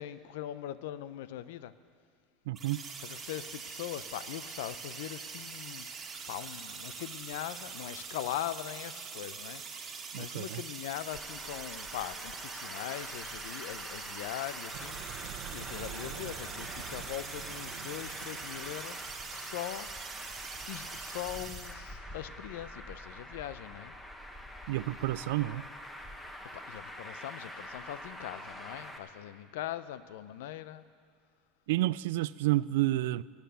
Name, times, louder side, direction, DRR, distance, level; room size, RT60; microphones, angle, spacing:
voice 1, 0.0-1.7 3.0-15.0 15.3-19.9 20.7-23.9 26.5-30.8, left 12 dB, 85° left, 14 dB, 0.6 m, -41 dB
sound 1, 2.5-21.7, right 5 dB, 25° right, 1.6 m, -43 dB
voice 2, 2.5-2.8 10.1-10.6 24.7-25.6 31.7-33.2, right 16 dB, 85° right, 19 dB, 0.3 m, -30 dB
Traffic noise roadway noise, 11.1-29.0, equal, 10° left, 1.2 m, -46 dB
sound 2, 14.7-19.6, right 10 dB, 65° right, 1.1 m, -47 dB
18.0 x 9.1 x 6.9 m, 2.2 s
supercardioid pair, 145°, 0 cm